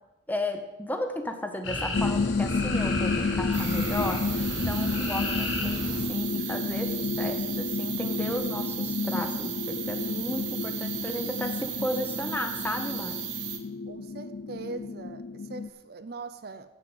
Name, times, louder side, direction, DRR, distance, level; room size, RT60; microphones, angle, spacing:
voice 1, 0.3-5.8 6.1-13.3, left 1 dB, 10° left, 6 dB, 0.9 m, -34 dB
sound 1, 1.6-6.0, left 2 dB, 70° left, 1.5 m, -33 dB
sound 2, 1.9-15.7, left 4 dB, 50° left, 0.4 m, -31 dB
sound 3, 3.5-13.6, right 10 dB, 70° right, 1.1 m, -36 dB
voice 2, 13.9-16.7, right 3 dB, 50° right, 11 dB, 0.5 m, -41 dB
7.8 x 7.4 x 8.0 m, 1.0 s
head